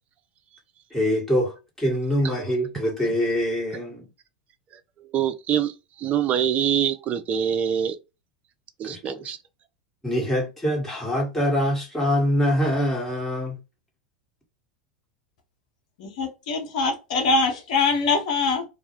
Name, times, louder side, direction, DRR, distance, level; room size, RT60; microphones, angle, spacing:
voice 1, 0.9-4.0 8.8-9.3 10.0-13.6, equal, 5° left, 1.2 m, -24 dB
voice 2, 5.1-5.7 6.0-7.9 8.8-9.4, right 9 dB, 35° right, 0.4 m, -24 dB
voice 3, 16.0-18.6, left 3 dB, 65° left, 0.8 m, -23 dB
2.3 x 2.0 x 2.9 m
hypercardioid pair, 90°, 4 cm